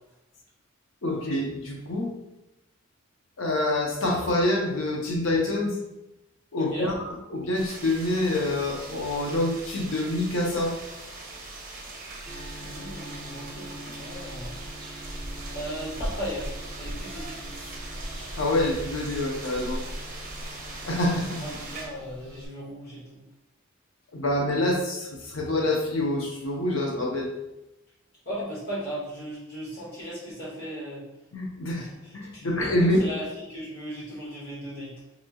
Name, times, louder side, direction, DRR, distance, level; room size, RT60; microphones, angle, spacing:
voice 1, 1.0-2.1 3.4-5.8 6.5-6.9 7.3-10.7 18.4-19.8 20.9-21.4 24.1-27.3 31.3-31.9 32.1-33.1, left 1 dB, 70° left, 0 dB, 0.7 m, -26 dB
voice 2, 6.6-6.9 12.6-14.6 15.5-16.5 16.8-17.5 21.4-23.2 28.3-31.0 31.8-31.9 32.3-32.7 33.0-34.9, equal, 55° left, -7 dB, 0.9 m, -37 dB
sound 1, 7.5-21.9, right 2 dB, 45° right, 0.7 m, -41 dB
sound 2, 12.3-22.5, equal, 5° left, 0.9 m, -39 dB
4.2 x 2.7 x 2.3 m, 0.95 s
head